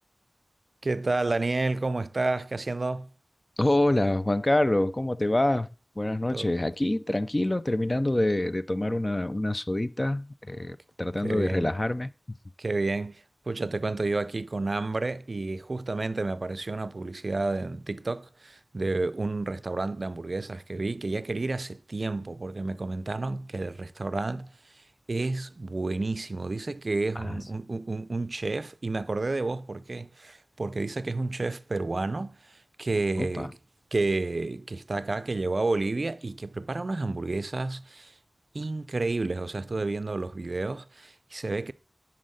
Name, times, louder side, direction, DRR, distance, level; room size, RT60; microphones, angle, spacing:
voice 1, 0.8-3.1 6.3-6.5 11.2-11.7 12.6-33.6 33.9-38.1 38.5-41.7, right 3 dB, 55° right, 0.4 m, -30 dB
voice 2, 3.6-5.7 6.0-12.1 33.2-33.5, left 1 dB, 30° left, 0.4 m, -26 dB
10.5 x 4.3 x 3.8 m
wide cardioid pair, 60°, 0 cm